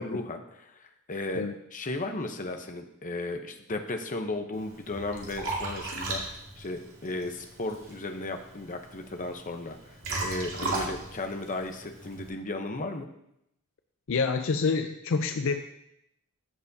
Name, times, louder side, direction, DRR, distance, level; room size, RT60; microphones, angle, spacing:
voice 1, 0.0-1.5 1.7-13.1, left 2 dB, 35° left, 5 dB, 0.9 m, -35 dB
Liquid, 4.5-12.3, right 2 dB, 65° right, 2.2 m, -37 dB
voice 2, 14.1-15.6, left 4 dB, 60° left, 7 dB, 0.5 m, -27 dB
14.5 x 6.9 x 2.8 m, 0.80 s
head